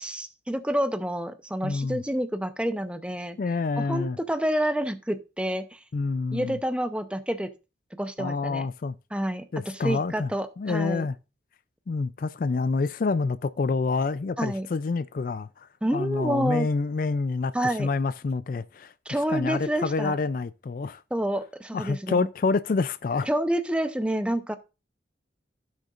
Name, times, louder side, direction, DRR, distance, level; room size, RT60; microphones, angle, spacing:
voice 1, 0.0-3.4 3.8-5.8 6.3-7.5 8.0-8.7 9.1-11.1 14.4-14.7 15.8-16.7 17.5-17.9 19.1-20.2 21.1-22.3 23.3-24.5, right 1 dB, 5° right, 0.7 m, -28 dB
voice 2, 1.6-2.0 3.4-4.2 5.9-6.6 8.2-8.9 9.5-10.3 10.6-11.2 11.9-15.5 15.9-17.5 17.8-21.0 21.7-23.3, left 4 dB, 50° left, 0.3 m, -27 dB
16.0 x 6.4 x 2.5 m
head